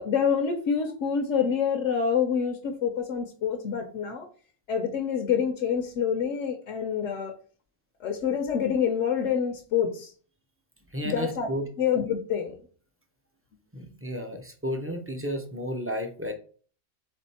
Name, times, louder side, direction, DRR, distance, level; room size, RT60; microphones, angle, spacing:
voice 1, 0.0-4.3 4.7-7.4 8.0-10.1 11.0-11.5 11.8-12.6, left 7 dB, 75° left, 0.9 m, -27 dB
voice 2, 10.9-11.7 13.7-16.3, equal, 20° right, 0.4 m, -32 dB
3.6 x 3.4 x 4.1 m
omnidirectional pair, 1.3 m